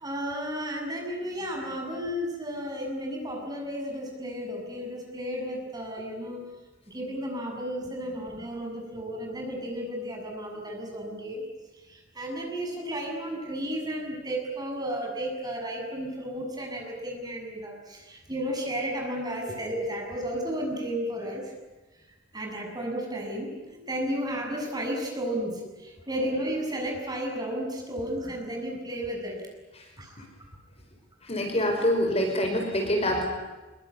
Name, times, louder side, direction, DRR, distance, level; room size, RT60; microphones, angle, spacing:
voice 1, 0.0-6.4 6.9-11.4 11.9-21.4 22.3-29.4 30.0-30.1, equal, 20° right, 1 dB, 7.1 m, -33 dB
voice 2, 31.2-33.3, left 1 dB, 30° left, 3 dB, 5.0 m, -26 dB
25.5 x 23.0 x 9.7 m, 1.2 s
head